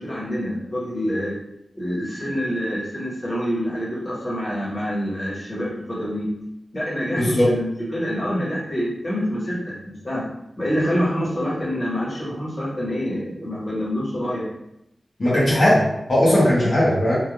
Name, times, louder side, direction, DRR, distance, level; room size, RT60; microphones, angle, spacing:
voice 1, 0.0-1.3 1.7-6.3 6.7-9.7 10.0-10.2 10.6-14.4 16.4-16.8, equal, 30° left, -7 dB, 1.1 m, -26 dB
voice 2, 7.2-7.5 15.2-17.2, left 1 dB, 60° left, -7 dB, 0.9 m, -18 dB
3.2 x 2.3 x 2.5 m, 0.83 s
wide cardioid pair, 115°, 0 cm